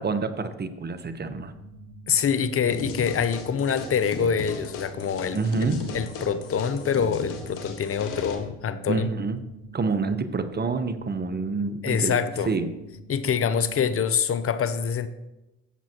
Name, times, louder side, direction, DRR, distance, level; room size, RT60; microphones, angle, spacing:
voice 1, 0.0-1.5 5.3-5.8 8.9-9.4 9.7-12.2 12.5-12.7, right 4 dB, 30° right, 10 dB, 1.0 m, -27 dB
sound 1, 1.4-14.0, right 1 dB, 80° right, 3.4 m, -46 dB
voice 2, 2.1-5.7 5.9-9.1 11.8-12.5 13.1-15.1, left 7 dB, 45° left, 12 dB, 0.8 m, -25 dB
sound 2, 2.7-8.3, left 3 dB, 80° left, 1.6 m, -36 dB
14.0 x 7.4 x 3.0 m, 0.96 s
hypercardioid pair, 60°, 32 cm